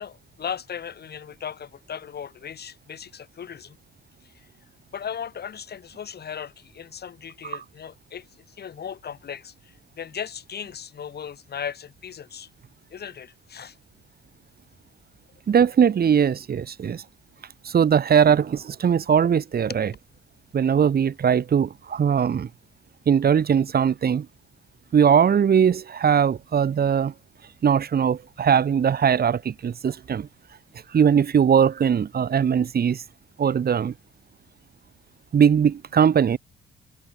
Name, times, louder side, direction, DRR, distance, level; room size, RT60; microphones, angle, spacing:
voice 1, 0.0-3.8 4.2-4.5 4.9-12.5 12.9-13.8 19.7-19.8, left 8 dB, 55° left, 6.9 m, -37 dB
voice 2, 15.5-17.0 17.6-19.9 20.5-22.5 23.1-24.3 24.9-27.1 27.6-30.3 30.9-33.0 33.4-33.9 35.3-36.4, right 7 dB, 50° right, 3.9 m, -20 dB
cardioid pair, 90°, 20 cm